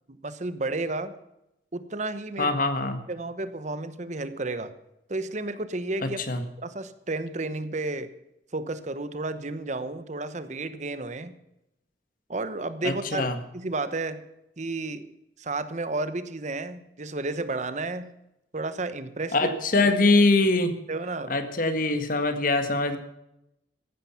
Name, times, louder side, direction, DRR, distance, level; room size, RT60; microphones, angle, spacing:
voice 1, 0.1-1.1 1.7-2.5 3.1-4.7 5.1-6.2 6.6-8.1 8.5-11.3 12.3-13.3 13.5-14.2 14.6-15.1 15.4-18.1 18.5-19.5 20.9-21.4, right 2 dB, 40° right, 12 dB, 1.0 m, -32 dB
voice 2, 2.4-3.0 6.0-6.4 12.8-13.4 19.3-20.7 21.3-23.0, left 2 dB, 50° left, 8 dB, 1.7 m, -23 dB
15.0 x 12.0 x 5.8 m, 0.86 s
head